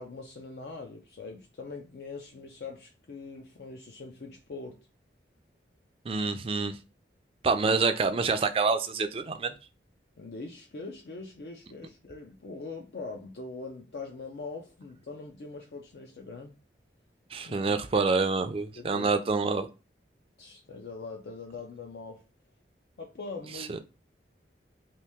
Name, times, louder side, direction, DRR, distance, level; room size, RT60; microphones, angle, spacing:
voice 1, 0.0-4.9 10.2-16.6 17.4-17.7 18.8-19.1 20.4-22.2 23.0-23.8, left 3 dB, 60° left, 0.4 m, -42 dB
voice 2, 6.0-6.8 7.4-9.6 17.3-19.7 23.5-23.8, right 4 dB, 30° right, 0.3 m, -27 dB
2.9 x 2.6 x 3.4 m
head